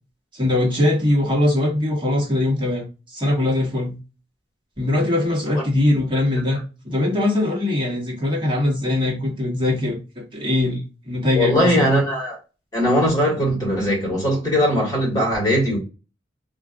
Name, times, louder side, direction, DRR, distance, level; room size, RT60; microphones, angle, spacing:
voice 1, 0.3-2.9 3.1-4.0 4.8-11.9, left 1 dB, 30° right, 1.0 m, -21 dB
voice 2, 11.4-12.4 12.7-15.8, equal, 20° left, 1.7 m, -20 dB
3.7 x 2.4 x 2.4 m
head